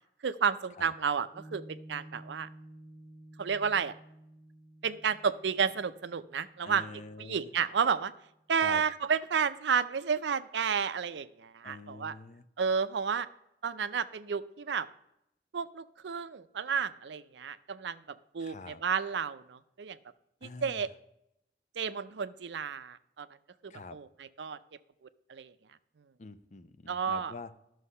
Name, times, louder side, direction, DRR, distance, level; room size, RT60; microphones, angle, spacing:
voice 1, 0.2-2.5 3.4-3.9 4.8-6.8 7.2-8.1 8.5-12.1 12.6-13.3 13.6-14.9 15.5-20.0 20.4-20.9 21.8-23.3 23.6-24.1 24.4-24.6 25.3-25.5 26.9-27.3, right 6 dB, 80° right, 14 dB, 0.5 m, -31 dB
Piano, 1.3-8.0, right 1 dB, 5° left, 1.3 m, -53 dB
voice 2, 6.6-7.5 8.6-8.8 11.6-12.4 18.4-18.8 20.4-20.9 23.7-24.0 26.2-27.5, left 3 dB, 40° left, 12 dB, 0.5 m, -46 dB
11.5 x 6.3 x 5.5 m, 0.81 s
head